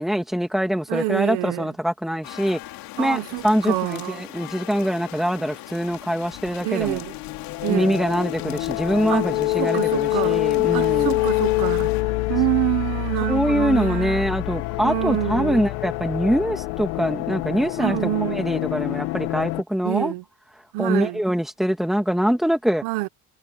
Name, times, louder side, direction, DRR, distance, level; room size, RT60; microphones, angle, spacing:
voice 1, 0.0-2.6 3.0-7.0 7.7-11.2 13.3-20.1 20.8-22.8, equal, ahead, 2.9 m, -24 dB
voice 2, 0.9-1.7 3.0-4.3 6.6-7.2 7.6-8.0 9.1-9.3 9.6-10.4 10.7-11.9 12.3-14.2 14.8-15.7 17.8-18.4 19.8-20.2 20.7-21.2 22.8-23.1, right 21 dB, 85° right, 1.3 m, -26 dB
sound 1, 2.2-12.0, left 17 dB, 65° left, 4.6 m, -40 dB
sound 2, 6.8-19.6, left 19 dB, 85° left, 2.5 m, -26 dB
cardioid pair, 160°, 37 cm